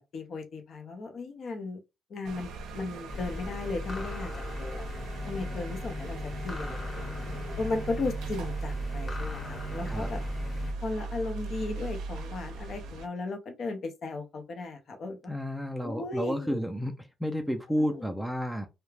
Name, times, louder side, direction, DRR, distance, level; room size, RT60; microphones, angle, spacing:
voice 1, 0.0-1.8 2.1-2.5 2.7-4.3 4.6-4.8 5.3-6.2 6.4-7.1 7.6-10.2 10.8-15.3 15.8-16.6 17.9-18.0, left 3 dB, 55° left, 0.6 m, -36 dB
sound 1, 2.2-13.1, right 3 dB, 85° right, 0.5 m, -39 dB
sound 2, 3.1-10.7, left 2 dB, 30° left, 1.0 m, -37 dB
voice 2, 15.3-18.7, equal, ahead, 0.4 m, -31 dB
2.3 x 2.1 x 3.2 m
cardioid pair, 90°, 0 cm